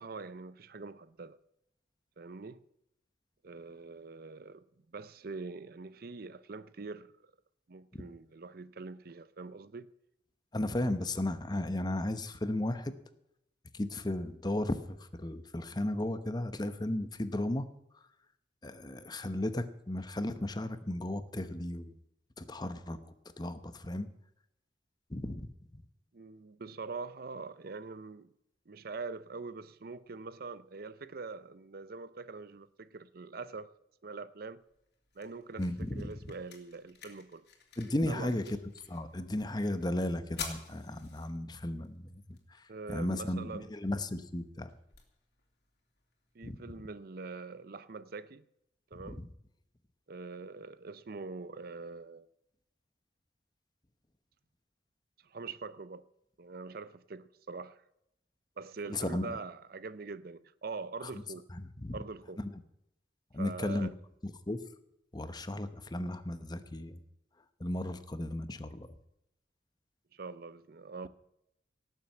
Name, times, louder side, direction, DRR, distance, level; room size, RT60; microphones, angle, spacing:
voice 1, 0.0-1.4 2.2-2.6 3.4-4.6 4.9-7.1 7.7-9.9 26.1-28.3 28.7-33.7 34.0-34.6 35.2-37.4 38.1-38.4 42.7-43.7 46.3-48.4 48.9-49.2 50.1-52.3 55.3-56.1 56.4-57.8 58.6-61.4 61.9-62.4 63.4-63.9 70.1-71.1, right 4 dB, 55° right, 0.6 m, -43 dB
voice 2, 10.5-12.9 13.7-17.7 18.6-21.9 22.4-23.0 23.4-24.1 25.1-25.5 35.6-36.1 37.8-38.4 38.9-42.4 42.9-44.7 46.4-46.6 49.0-49.3 58.9-59.3 61.5-62.0 62.4-62.5 63.3-63.9 64.2-64.6 65.1-67.0 67.6-68.9, left 1 dB, 25° left, 0.9 m, -35 dB
sound 1, 34.6-46.6, left 6 dB, 65° left, 3.0 m, -51 dB
17.5 x 7.5 x 7.8 m
head